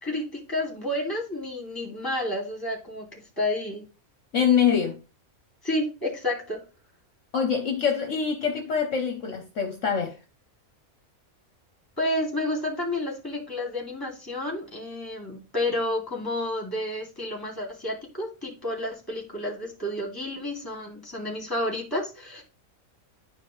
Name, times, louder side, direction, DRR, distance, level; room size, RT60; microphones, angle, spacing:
voice 1, 0.0-3.8 5.6-6.6 12.0-22.4, left 1 dB, 15° left, 2.6 m, -30 dB
voice 2, 4.3-5.0 7.3-10.2, left 7 dB, 60° left, 1.3 m, -24 dB
10.5 x 5.0 x 3.2 m
omnidirectional pair, 1.5 m